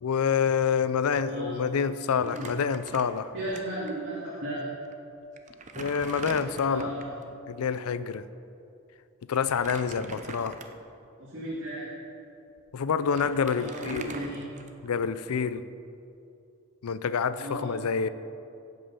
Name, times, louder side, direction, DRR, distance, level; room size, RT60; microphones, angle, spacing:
voice 1, 0.0-3.3 5.8-6.9 7.5-8.3 9.3-10.6 12.7-14.2 14.8-15.6 16.8-18.1, left 6 dB, 85° left, 14 dB, 0.4 m, -27 dB
voice 2, 1.3-1.6 2.1-2.6 3.3-4.6 6.6-7.1 11.2-11.9 13.6-14.6 17.3-17.7, right 1 dB, 50° right, -9 dB, 2.5 m, -35 dB
Crumpling crinkling, 2.2-3.6 3.9-4.0 4.8-4.9 5.4-7.2 9.3-10.9 11.5-11.7 12.6-12.7 12.9-15.0, right 3 dB, 35° right, 0.6 m, -42 dB
16.5 x 5.6 x 5.5 m, 2.7 s
head